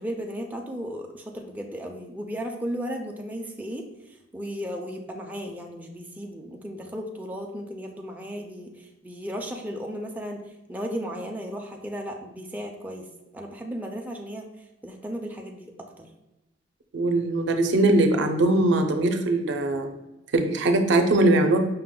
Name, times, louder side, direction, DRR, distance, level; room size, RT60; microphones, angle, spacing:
voice 1, 0.0-10.4 10.7-13.1 13.3-14.4 14.8-15.7 16.0-16.1, equal, 10° right, 2 dB, 0.3 m, -35 dB
voice 2, 16.9-19.9 20.3-21.6, right 2 dB, 65° right, 5 dB, 0.5 m, -21 dB
5.4 x 2.1 x 3.7 m, 1.0 s
head